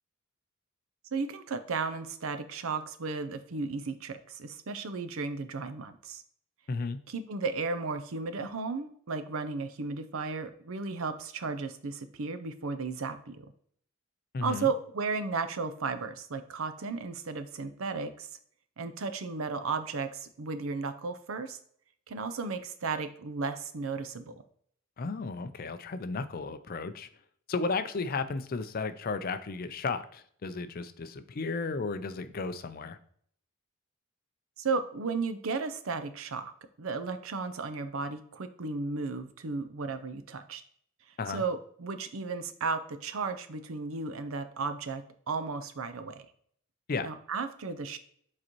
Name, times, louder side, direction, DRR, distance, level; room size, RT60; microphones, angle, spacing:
voice 1, 1.1-6.2 7.1-13.5 14.4-18.3 18.8-21.6 22.1-24.3 34.6-36.5 36.8-40.6 41.3-46.3 47.0-48.0, right 4 dB, 80° right, 10 dB, 0.6 m, -34 dB
voice 2, 6.7-7.0 14.3-14.7 25.0-27.1 27.5-33.0 41.2-41.4 46.9-47.1, left 4 dB, 45° left, 11 dB, 0.4 m, -34 dB
7.5 x 4.1 x 3.0 m, 0.62 s
head